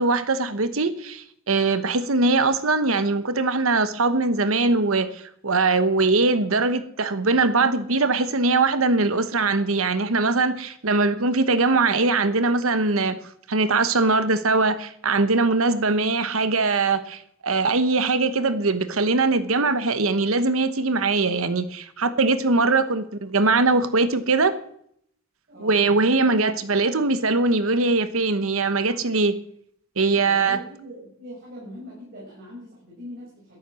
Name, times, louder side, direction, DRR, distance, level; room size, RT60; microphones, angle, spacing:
voice 1, 0.0-13.2 13.5-24.6 25.6-29.4 30.0-30.6, right 3 dB, 80° right, 1.1 m, -21 dB
voice 2, 30.1-33.6, equal, 45° right, 7.3 m, -41 dB
13.5 x 12.5 x 6.4 m
head